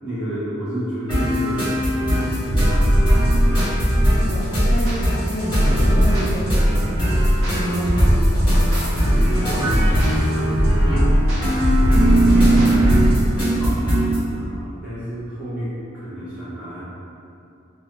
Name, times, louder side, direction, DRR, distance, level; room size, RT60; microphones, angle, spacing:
voice 1, 0.0-3.6 4.1-4.3 8.6-9.8 10.2-11.1 11.8-12.3 13.5-16.8, right 1 dB, 5° right, -12 dB, 0.6 m, -32 dB
sound 1, 1.1-14.2, right 1 dB, 20° left, 1.0 m, -21 dB
sound 2, 2.5-13.2, equal, 75° right, 0.6 m, -18 dB
voice 2, 4.2-7.2 7.5-8.9, equal, 50° left, -8 dB, 0.6 m, -31 dB
2.3 x 2.2 x 2.7 m, 2.6 s
head